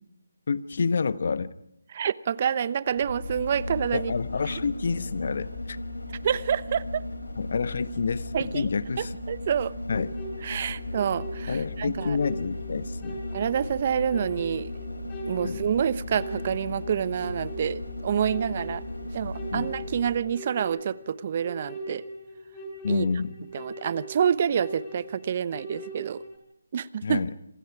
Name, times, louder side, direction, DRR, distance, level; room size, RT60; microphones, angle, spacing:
voice 1, 0.5-1.5 3.9-5.8 7.4-9.1 9.9-10.1 11.5-13.2 15.4-15.6 19.5-19.7 22.8-23.3 27.0-27.3, left 5 dB, 55° left, 14 dB, 1.2 m, -28 dB
voice 2, 1.9-4.1 6.2-7.0 8.3-8.7 9.0-9.7 10.4-12.2 13.3-14.7 15.3-18.8 19.1-22.0 22.9-23.1 23.5-26.2 26.7-27.2, right 8 dB, 40° right, 17 dB, 1.0 m, -27 dB
sound 1, 2.9-20.3 20.6-20.7, left 1 dB, 90° left, 7.0 m, -36 dB
sound 2, 9.9-26.4, right 1 dB, 20° left, 6.4 m, -42 dB
27.5 x 26.5 x 4.9 m, 0.80 s
figure-of-eight pair, 155°, 0 cm